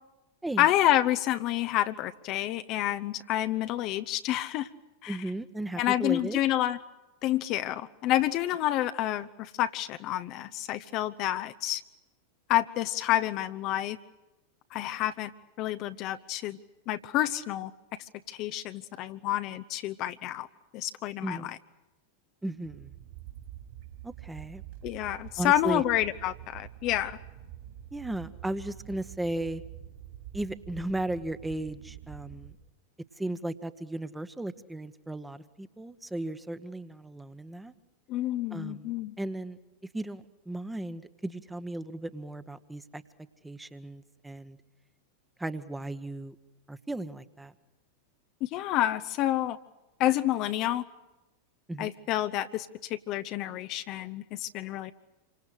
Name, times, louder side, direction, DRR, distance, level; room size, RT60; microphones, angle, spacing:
voice 1, 0.6-4.7 5.0-5.2 5.8-6.8 7.2-11.8 12.5-14.0 14.7-15.3 15.6-16.6 16.9-17.7 18.0-20.5 20.7-21.6 24.8-27.2 38.1-39.1 48.4-49.6 50.0-50.8 51.8-54.9, left 13 dB, 40° left, 10 dB, 0.8 m, -29 dB
voice 2, 5.1-6.4 21.2-21.5 22.4-22.9 24.0-24.6 25.4-25.8 27.9-29.6 30.3-32.5 33.2-37.7 38.5-39.6 39.9-43.0 43.4-44.6 45.4-46.4 46.7-47.5 51.7-51.9, right 1 dB, 5° right, 12 dB, 1.2 m, -35 dB
sound 1, 22.6-32.5, right 12 dB, 50° right, 3.8 m, -46 dB
28.0 x 25.0 x 6.6 m, 1.0 s
figure-of-eight pair, 90°, 0 cm